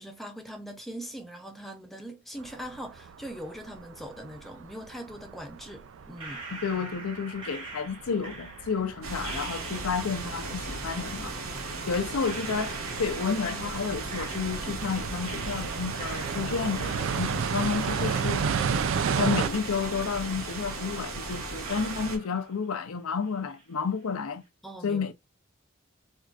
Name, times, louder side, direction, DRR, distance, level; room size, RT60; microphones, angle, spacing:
voice 1, 0.0-6.5 19.2-19.4 24.6-25.1, equal, ahead, 0.5 m, -41 dB
sound 1, 2.4-19.5, right 6 dB, 65° right, 0.3 m, -34 dB
sound 2, 6.2-10.3 11.4-11.5 12.2-14.9 15.2-17.5 17.8-19.9 20.2-20.3 21.0-21.1 21.6-22.9 23.2-23.8, right 3 dB, 25° right, 1.1 m, -44 dB
voice 2, 6.5-11.4 11.7-18.4 19.2-24.4 24.8-25.1, left 5 dB, 90° left, 0.5 m, -31 dB
sound 3, 9.0-22.2, right 3 dB, 80° right, 1.2 m, -36 dB
4.5 x 2.4 x 2.3 m
head